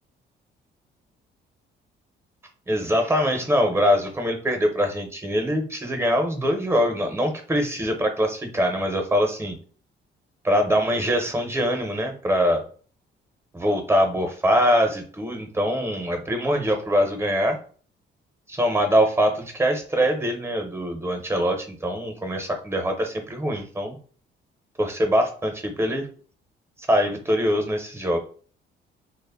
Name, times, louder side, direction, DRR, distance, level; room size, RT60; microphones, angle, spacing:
voice 1, 2.7-9.6 10.4-12.6 13.5-17.6 18.5-24.0 24.8-26.1 26.9-28.2, equal, 10° right, 4 dB, 0.6 m, -23 dB
2.1 x 2.0 x 3.4 m, 0.42 s
cardioid pair, 90°, 20 cm